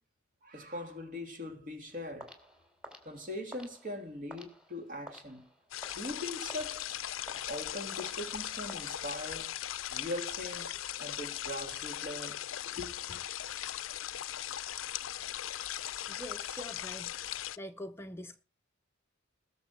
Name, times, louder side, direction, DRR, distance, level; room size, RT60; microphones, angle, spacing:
voice 1, 0.4-2.4 3.0-5.5 5.9-7.0 7.4-9.6 9.9-13.2, left 1 dB, 45° right, 3.1 m, -41 dB
sound 1, 2.2-9.4, equal, 5° right, 3.1 m, -53 dB
sound 2, 5.7-17.6, left 12 dB, 70° left, 0.5 m, -39 dB
voice 2, 16.1-17.1 17.6-18.4, equal, 10° left, 0.8 m, -44 dB
20.0 x 7.1 x 4.7 m
head